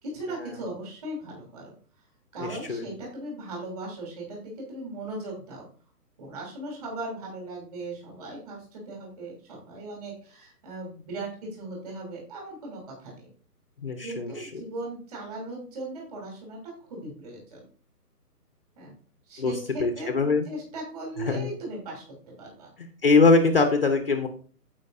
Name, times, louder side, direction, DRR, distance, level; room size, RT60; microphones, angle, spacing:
voice 1, 0.0-1.7 2.3-5.7 6.2-13.3 14.0-16.6 16.8-17.7 18.8-18.9 19.3-22.0 22.4-22.7, right 2 dB, 25° right, -1 dB, 3.1 m, -38 dB
voice 2, 2.4-2.8 13.8-14.5 19.4-19.5 19.8-20.4 21.2-21.5 23.0-24.3, left 3 dB, 35° left, 6 dB, 0.8 m, -22 dB
15.0 x 5.2 x 2.6 m, 0.42 s
hypercardioid pair, 170°, 48 cm